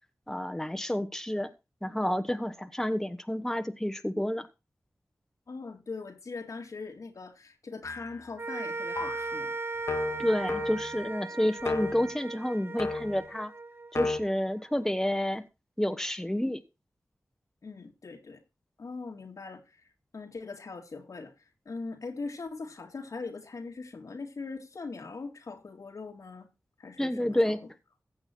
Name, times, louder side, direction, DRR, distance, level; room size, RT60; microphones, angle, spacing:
voice 1, 0.3-1.5 1.8-4.5 10.2-13.5 13.9-15.4 15.8-16.6 27.0-27.6, left 1 dB, 5° left, 1.1 m, -29 dB
voice 2, 5.5-9.5 17.6-18.4 18.8-19.6 20.1-21.3 21.7-26.5 26.8-27.4, left 4 dB, 75° left, 2.0 m, -41 dB
sound 1, 7.8-8.3 9.0-9.3 9.9-11.0 11.6-12.1 12.8-13.3 14.0-14.2, left 3 dB, 60° left, 1.3 m, -33 dB
sound 2, 8.4-14.8, right 3 dB, 45° right, 0.9 m, -38 dB
15.0 x 7.8 x 4.4 m
wide cardioid pair, 60°, 6 cm